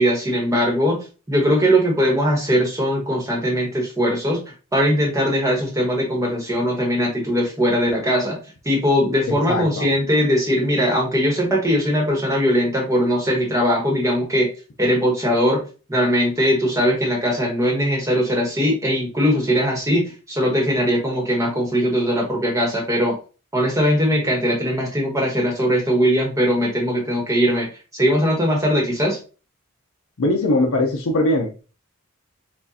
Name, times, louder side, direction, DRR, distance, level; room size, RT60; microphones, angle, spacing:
voice 1, 0.0-4.4 4.7-8.4 8.6-14.5 14.8-15.6 15.9-23.2 23.5-27.7 27.9-29.2, equal, 15° right, -1 dB, 1.3 m, -20 dB
voice 2, 9.5-9.9 30.2-31.5, left 1 dB, 70° left, 2 dB, 0.6 m, -20 dB
6.1 x 2.5 x 2.7 m, 0.35 s
head